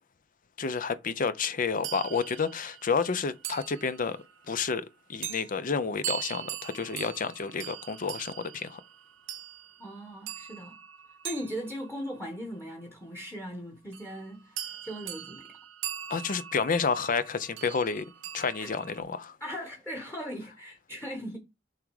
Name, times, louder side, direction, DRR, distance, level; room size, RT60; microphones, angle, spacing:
voice 1, 0.6-4.2 4.5-8.8 16.1-18.0 18.3-19.4, left 5 dB, 45° left, 0.6 m, -30 dB
sound 1, 1.8-4.3 5.2-5.5 6.0-12.4 13.9-14.2 14.6-19.0, right 11 dB, 85° right, 0.8 m, -41 dB
voice 2, 9.8-10.8 11.2-15.6 18.6-18.7 19.4-21.4, equal, 10° left, 1.3 m, -39 dB
7.4 x 3.6 x 4.8 m
head